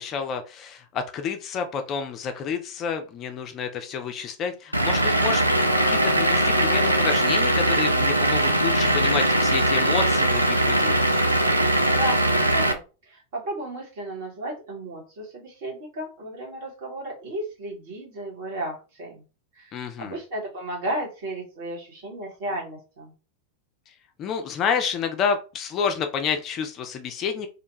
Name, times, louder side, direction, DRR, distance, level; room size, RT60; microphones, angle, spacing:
voice 1, 0.0-5.4 5.8-11.0 19.7-20.2 24.2-27.5, left 6 dB, 30° left, 6 dB, 0.4 m, -29 dB
Vehicle / Engine, 4.7-12.7, right 1 dB, 90° right, 0.3 m, -21 dB
voice 2, 11.9-19.2 19.5-23.1, right 1 dB, 50° right, -1 dB, 1.1 m, -34 dB
2.4 x 2.2 x 2.9 m, 0.33 s
figure-of-eight pair, 90°, 0 cm